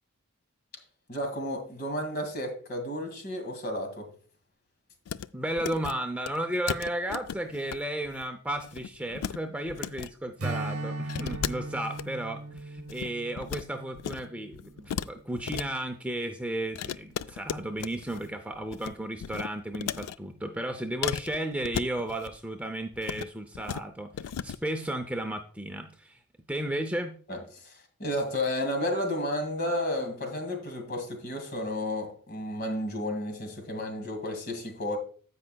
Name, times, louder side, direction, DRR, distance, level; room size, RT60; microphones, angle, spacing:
voice 1, 1.1-4.1 27.3-35.0, left 1 dB, 45° left, 5 dB, 2.0 m, -32 dB
sound 1, 5.1-5.3 5.5-5.9 6.3-6.4 6.7-7.8 8.1-8.2 8.6-9.4 9.7-10.1 11.1-12.0 12.5-13.6 13.9-14.3 14.5-15.7 16.8-18.3 18.5-18.9 19.2-20.2 21.0-22.4 22.9-23.3 23.6-23.8 24.1-24.6, left 8 dB, 90° left, 0.3 m, -35 dB
voice 2, 5.3-26.2 26.5-27.2, right 1 dB, 5° right, 5 dB, 0.5 m, -34 dB
Strum, 10.4-15.2, right 2 dB, 75° right, 0.8 m, -38 dB
16.0 x 5.4 x 2.2 m, 0.43 s
head